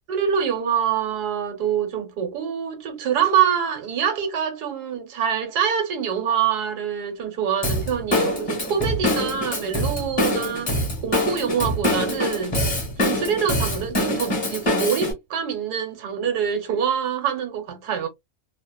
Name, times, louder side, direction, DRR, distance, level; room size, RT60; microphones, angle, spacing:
voice 1, 0.1-10.7 11.0-18.1, right 8 dB, 85° right, 1.5 m, -25 dB
Drum kit / Drum, 7.6-15.1, left 1 dB, 30° left, 1.3 m, -24 dB
3.3 x 2.1 x 2.2 m
omnidirectional pair, 1.6 m